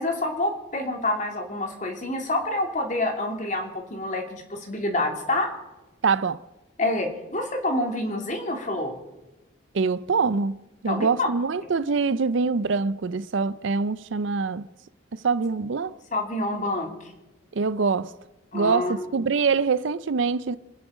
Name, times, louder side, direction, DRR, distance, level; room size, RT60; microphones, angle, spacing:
voice 1, 0.0-5.5 6.8-8.9 10.9-11.3 16.1-17.1 18.5-19.1, left 2 dB, 35° left, 2.6 m, -27 dB
voice 2, 6.0-6.4 9.7-10.6 10.8-14.6 15.2-15.9 17.5-18.1 18.5-20.6, right 4 dB, 65° right, 0.5 m, -24 dB
26.5 x 10.0 x 5.0 m
head